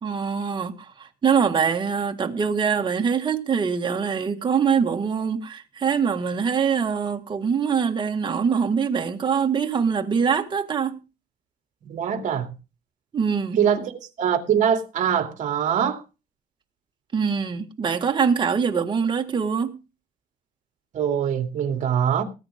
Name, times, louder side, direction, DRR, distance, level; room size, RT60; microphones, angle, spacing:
voice 1, 0.0-11.0 13.1-13.6 17.1-19.8, right 6 dB, 30° right, 1.8 m, -23 dB
voice 2, 11.9-12.5 13.6-16.0 20.9-22.2, right 8 dB, 55° right, 2.9 m, -23 dB
19.0 x 9.0 x 3.7 m
cardioid pair, 135°, 16 cm